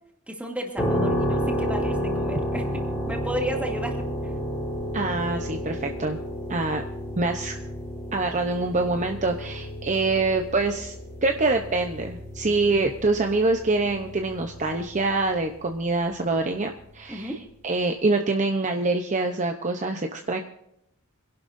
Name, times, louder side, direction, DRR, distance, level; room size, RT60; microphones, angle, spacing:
voice 1, 0.3-4.3 17.1-17.4, right 1 dB, 5° right, 1 dB, 2.4 m, -33 dB
sound 1, 0.8-15.4, equal, 15° left, 3.6 m, -31 dB
voice 2, 4.9-6.2 6.5-6.8 7.2-7.6 8.1-10.9 11.2-17.3 17.6-20.4, right 3 dB, 35° right, 4 dB, 0.8 m, -25 dB
26.0 x 11.5 x 2.7 m, 0.78 s
head